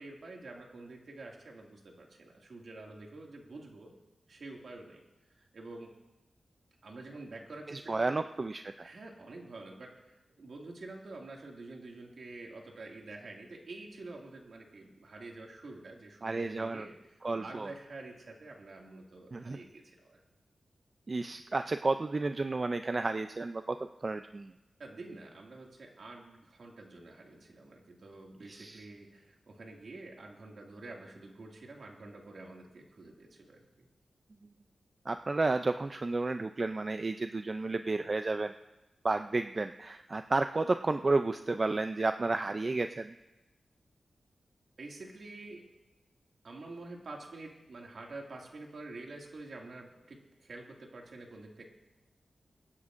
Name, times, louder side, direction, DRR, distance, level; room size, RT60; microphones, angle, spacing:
voice 1, 0.0-3.9 4.3-5.0 5.3-5.9 6.8-8.2 8.8-17.0 17.3-20.2 24.8-33.9 44.8-45.6 46.4-51.6, right 2 dB, 60° right, 0 dB, 2.2 m, -48 dB
voice 2, 7.7-8.9 16.2-16.9 17.2-17.7 19.3-19.6 21.1-24.5 28.5-28.8 35.1-38.5 39.0-43.1, right 3 dB, 35° right, 8 dB, 0.3 m, -32 dB
25.0 x 9.8 x 2.5 m, 1.0 s
wide cardioid pair, 110°, 0 cm